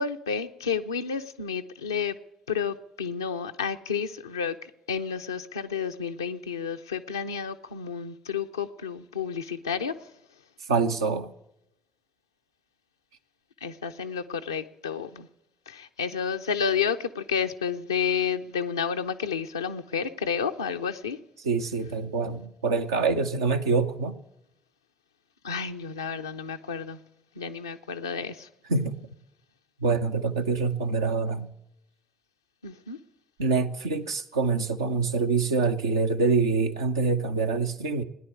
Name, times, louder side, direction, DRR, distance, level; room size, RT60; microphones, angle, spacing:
voice 1, 0.0-2.2 2.5-10.1 13.6-15.3 15.7-21.2 25.4-27.0 27.4-28.5 32.6-33.0, left 6 dB, 85° left, 7 dB, 0.5 m, -31 dB
voice 2, 10.7-11.3 21.4-24.1 28.7-29.0 29.8-31.5 33.4-38.0, right 4 dB, 80° right, 5 dB, 0.7 m, -25 dB
17.0 x 10.5 x 8.3 m, 0.86 s
figure-of-eight pair, 45°, 2 cm